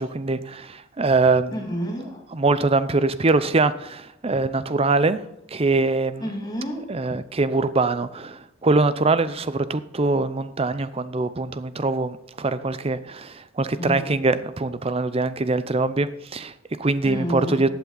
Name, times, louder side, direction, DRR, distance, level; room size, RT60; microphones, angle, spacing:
voice 1, 0.0-1.6 2.3-5.2 5.5-6.4 6.9-17.7, right 3 dB, 30° right, 0.6 m, -23 dB
voice 2, 1.5-2.2 6.2-6.8 13.8-14.2 17.0-17.7, equal, 20° left, 2.3 m, -30 dB
15.0 x 8.6 x 4.0 m
head